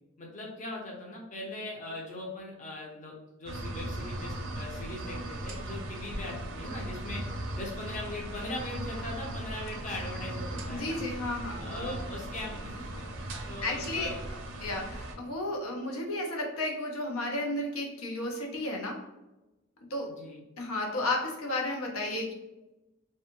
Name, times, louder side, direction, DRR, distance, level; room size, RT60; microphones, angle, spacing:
voice 1, 0.2-3.1 3.4-7.2 7.5-11.0 11.6-13.1 13.5-14.2 20.1-20.4, left 2 dB, 35° left, -2 dB, 0.5 m, -40 dB
sound 1, 3.5-15.2, right 1 dB, 65° right, 0.4 m, -38 dB
voice 2, 10.7-12.0 13.6-14.1 14.6-19.0 19.9-20.1 20.6-22.3, left 2 dB, 90° left, 1 dB, 0.6 m, -33 dB
2.6 x 2.3 x 2.9 m, 1.0 s
head